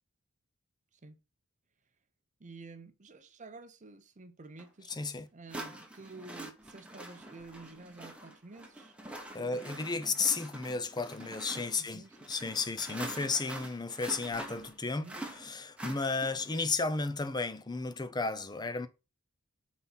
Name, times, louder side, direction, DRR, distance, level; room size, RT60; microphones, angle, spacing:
voice 1, 2.4-5.0 5.3-9.0 9.3-9.6 9.9-10.2 11.8-12.2 14.9-15.2, right 3 dB, 35° right, 0.7 m, -50 dB
sound 1, 4.6-4.7 5.5-16.6, right 1 dB, 5° right, 1.0 m, -45 dB
voice 2, 4.9-5.3 9.3-15.1 15.4-18.9, left 4 dB, 20° left, 0.6 m, -33 dB
5.5 x 4.1 x 5.8 m
head